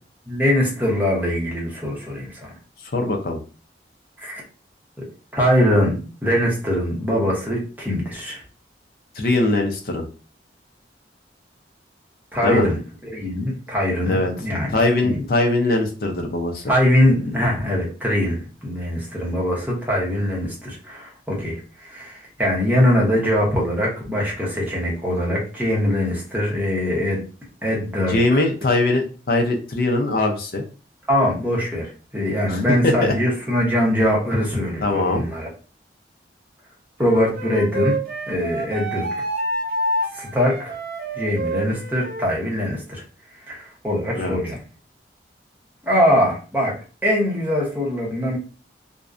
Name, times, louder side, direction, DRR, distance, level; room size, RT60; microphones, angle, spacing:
voice 1, 0.3-2.5 4.2-4.4 5.3-8.4 12.3-14.8 15.0-15.2 16.7-27.2 27.6-28.7 31.1-35.5 37.0-38.0 38.3-39.0 40.1-40.7 41.2-43.0 43.5-44.6 45.8-46.8 47.0-48.4, equal, 10° right, -3 dB, 0.7 m, -22 dB
voice 2, 2.8-3.4 9.2-10.0 12.4-12.7 14.1-14.3 14.7-16.7 28.1-30.6 32.5-33.1 34.8-35.2 44.2-44.4, left 2 dB, 55° left, 3 dB, 0.5 m, -21 dB
Wind instrument woodwind instrument, 37.0-42.3, right 1 dB, 55° right, 0.6 m, -27 dB
2.5 x 2.1 x 2.4 m, 0.36 s
head